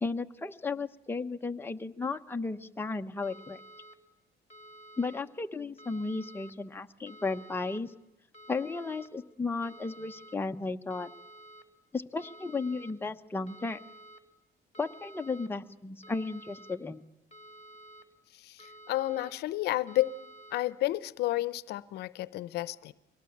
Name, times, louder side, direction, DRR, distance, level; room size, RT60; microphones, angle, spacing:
voice 1, 0.0-3.6 5.0-7.9 8.5-11.1 11.9-13.8 14.8-17.0, left 3 dB, 15° left, 5 dB, 1.0 m, -34 dB
sound 1, 3.2-4.0 4.5-5.2 5.8-6.5 7.1-7.8 8.3-9.1 9.6-10.4 10.9-11.6 12.2-12.9 13.5-14.2 14.7-15.5 16.0-16.8 17.3-18.0 18.6-19.3 19.9-20.6, right 1 dB, 35° left, 1.7 m, -51 dB
voice 2, 18.4-20.1 20.5-22.9, left 16 dB, 75° left, 18 dB, 0.8 m, -31 dB
23.0 x 18.5 x 8.7 m, 0.91 s
cardioid pair, 110°, 17 cm